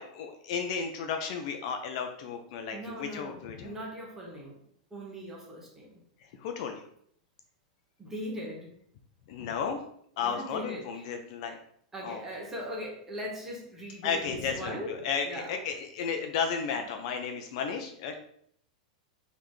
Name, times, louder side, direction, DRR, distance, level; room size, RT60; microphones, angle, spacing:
voice 1, 0.0-3.8 6.4-6.9 9.3-9.8 10.2-11.6 12.0-12.2 14.0-18.2, left 6 dB, 50° left, 5 dB, 0.6 m, -33 dB
voice 2, 2.7-4.6 4.9-6.0 8.0-8.7 10.2-10.9 11.9-14.9 15.2-15.5, equal, 10° right, -3 dB, 1.2 m, -39 dB
4.0 x 3.4 x 3.2 m, 0.66 s
supercardioid pair, 155°, 4 cm